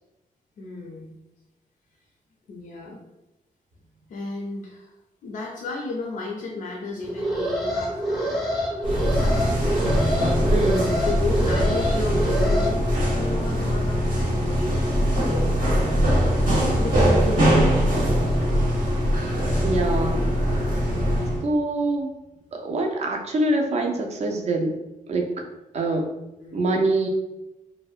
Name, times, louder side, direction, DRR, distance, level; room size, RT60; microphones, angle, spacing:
voice 1, 0.6-1.1 2.5-3.0 4.1-4.9 5.2-8.5 9.1-9.8 10.6-15.5 16.2-18.2 26.4-26.7, left 3 dB, 65° left, -1 dB, 0.4 m, -34 dB
Alarm, 7.0-12.7, equal, ahead, 0.7 m, -27 dB
sound 1, 8.8-21.4, equal, 75° right, 0.8 m, -22 dB
voice 2, 10.5-11.0 19.6-20.3 21.4-22.1 22.5-24.8 25.1-25.4 25.7-26.1 26.5-27.1, right 2 dB, 50° right, 2 dB, 0.4 m, -24 dB
2.6 x 2.0 x 2.3 m, 0.98 s
wide cardioid pair, 145°, 15 cm